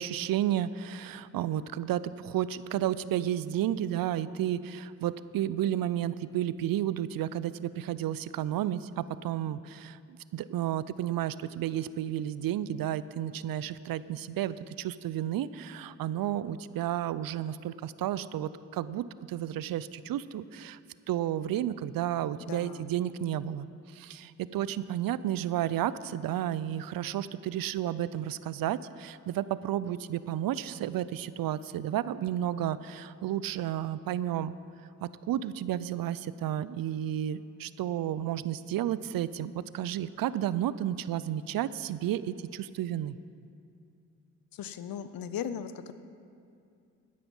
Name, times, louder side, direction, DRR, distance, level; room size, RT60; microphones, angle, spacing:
voice 1, 0.0-10.0 10.3-20.8 21.1-34.5 35.0-43.2, right 11 dB, 75° right, 17 dB, 0.5 m, -32 dB
voice 2, 22.4-22.9 44.5-45.9, left 8 dB, 75° left, 12 dB, 0.7 m, -38 dB
12.0 x 9.4 x 5.5 m, 2.4 s
supercardioid pair, 50°, 35 cm